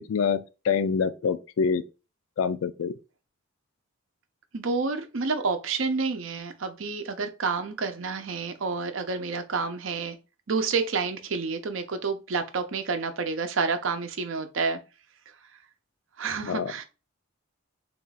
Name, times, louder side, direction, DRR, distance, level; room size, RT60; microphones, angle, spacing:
voice 1, 0.0-1.8 2.4-2.9 16.4-16.7, left 6 dB, 75° left, 0.3 m, -26 dB
voice 2, 4.5-10.2 10.5-14.8 16.2-16.8, right 4 dB, 70° right, 0.6 m, -29 dB
3.7 x 2.3 x 4.0 m
head